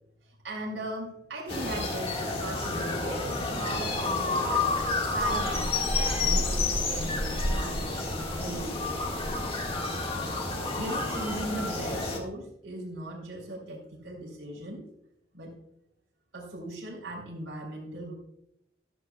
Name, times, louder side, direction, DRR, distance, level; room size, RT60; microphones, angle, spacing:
voice 1, 0.2-9.1 10.7-14.8 15.3-15.5 16.3-18.1, right 1 dB, 85° right, -4 dB, 3.3 m, -39 dB
sound 1, 1.5-12.2, left 2 dB, 30° left, 1.8 m, -29 dB
14.5 x 13.5 x 2.3 m, 0.80 s
head